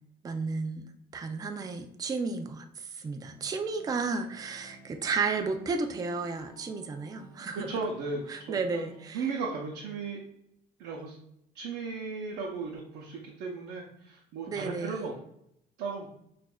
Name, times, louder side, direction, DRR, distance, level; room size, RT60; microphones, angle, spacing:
voice 1, 0.2-7.7 8.3-9.3 14.5-15.0, right 4 dB, 20° right, 6 dB, 0.4 m, -33 dB
sound 1, 3.3-10.2, right 1 dB, 15° left, 1.5 m, -56 dB
voice 2, 7.5-10.2 10.8-11.2 11.5-15.1 15.8-16.1, right 4 dB, 85° right, -2 dB, 0.7 m, -36 dB
5.9 x 2.5 x 2.2 m, 0.75 s
cardioid pair, 110°, 17 cm